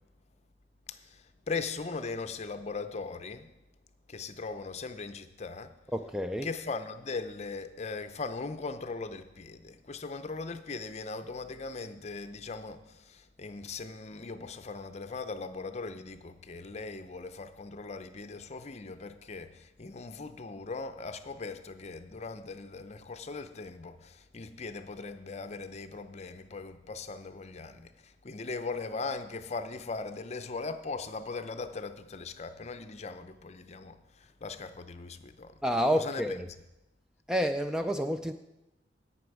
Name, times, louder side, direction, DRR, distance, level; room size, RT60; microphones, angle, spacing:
voice 1, 0.9-3.5 4.1-5.7 6.4-35.6 35.9-36.3, left 4 dB, 35° left, 0.6 m, -39 dB
voice 2, 5.9-6.5 35.6-36.5 37.3-38.3, equal, 5° right, 0.3 m, -29 dB
17.0 x 6.0 x 4.8 m
head